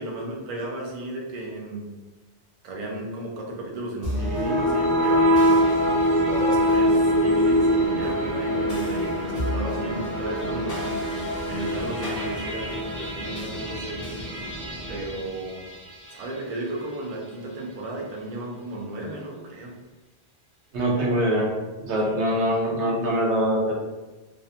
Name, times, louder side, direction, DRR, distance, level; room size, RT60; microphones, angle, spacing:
voice 1, 0.0-1.9 2.6-5.6 6.2-10.8 11.5-14.1 14.9-15.6 16.1-19.8 22.0-22.4, right 2 dB, 55° right, -1 dB, 0.4 m, -34 dB
sound 1, 4.0-16.3, equal, 20° left, 0.5 m, -24 dB
voice 2, 20.7-21.5 21.8-23.7, equal, 80° right, -2 dB, 0.9 m, -23 dB
2.5 x 2.0 x 2.7 m, 1.2 s
omnidirectional pair, 1.1 m